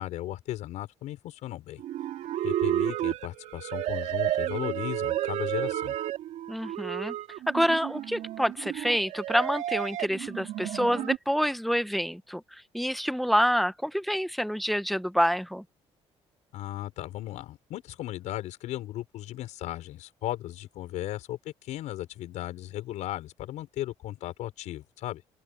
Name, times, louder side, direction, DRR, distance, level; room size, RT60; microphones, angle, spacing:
voice 1, 0.0-1.8 2.4-6.0 16.5-25.2, left 14 dB, 80° left, 6.0 m, -36 dB
sound 1, 1.8-11.2, right 13 dB, 80° right, 2.8 m, -31 dB
voice 2, 6.5-7.2 7.5-15.6, equal, ahead, 1.0 m, -27 dB
open air
cardioid pair, 110°, 12 cm